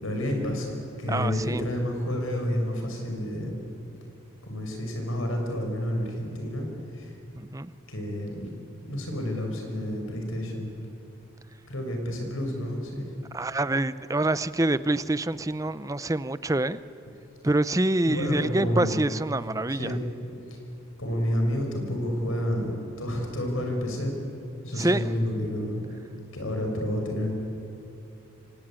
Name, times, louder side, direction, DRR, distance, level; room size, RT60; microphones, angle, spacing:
voice 1, 0.0-3.6 4.4-6.7 6.9-7.1 7.9-8.5 8.8-10.7 11.7-13.0 18.1-18.9 19.7-20.0 20.5-20.6 21.0-24.1 24.6-25.8 26.3-27.3, equal, 75° left, 3 dB, 5.9 m, -29 dB
voice 2, 1.1-1.6 7.4-7.7 13.3-16.8 17.4-20.0 24.8-25.0, right 2 dB, 15° right, 15 dB, 0.6 m, -26 dB
27.5 x 24.0 x 9.0 m, 2.8 s
head